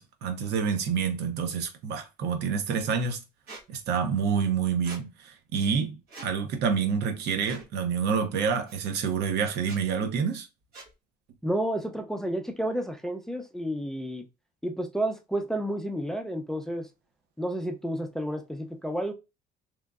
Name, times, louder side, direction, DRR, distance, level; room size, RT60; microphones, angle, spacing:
voice 1, 0.0-3.2 3.7-6.0 6.2-10.5, right 6 dB, 80° right, 0.7 m, -28 dB
Squeak, 3.5-3.6 4.8-5.0 6.1-6.3 7.4-7.7 8.7-8.8 9.6-9.8 10.7-10.9, right 3 dB, 65° right, 1.4 m, -44 dB
voice 2, 11.4-14.3 14.6-16.9 17.4-19.1, right 1 dB, 5° left, 0.4 m, -31 dB
2.9 x 2.5 x 2.3 m
cardioid pair, 110°, 17 cm